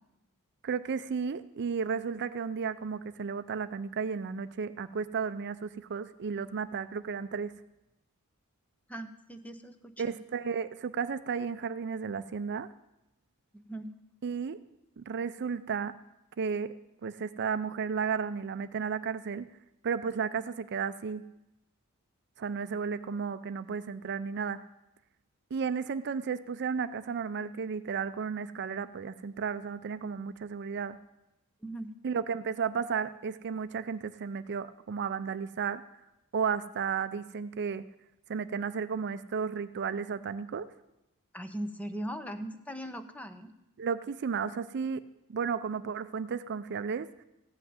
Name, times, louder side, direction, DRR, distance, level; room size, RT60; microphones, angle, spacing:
voice 1, 0.6-7.5 10.0-12.7 14.2-14.6 15.0-15.9 16.4-16.8 17.0-19.5 19.8-21.2 22.4-24.6 25.5-31.0 32.0-35.8 36.3-37.8 38.3-40.7 43.8-45.0 45.3-47.1, right 6 dB, 50° right, 12 dB, 0.4 m, -33 dB
voice 2, 8.9-10.2 13.7-13.9 31.6-31.9 41.3-43.5, right 1 dB, 5° left, 8 dB, 0.7 m, -39 dB
15.0 x 5.7 x 9.4 m, 0.91 s
head